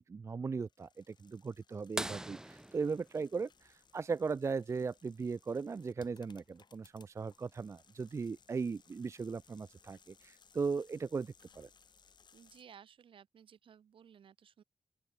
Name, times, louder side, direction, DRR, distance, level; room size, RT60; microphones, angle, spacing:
voice 1, 0.0-11.7, right 5 dB, 35° right, 0.4 m, -38 dB
sound 1, 0.6-12.6, left 6 dB, 55° left, 2.0 m, -66 dB
sound 2, 2.0-4.4 6.3-6.4 8.7-8.8 10.5-10.8 11.5-11.6, right 1 dB, 5° right, 0.8 m, -43 dB
voice 2, 12.3-14.6, right 8 dB, 80° right, 1.9 m, -58 dB
open air
wide cardioid pair, 125°, 9 cm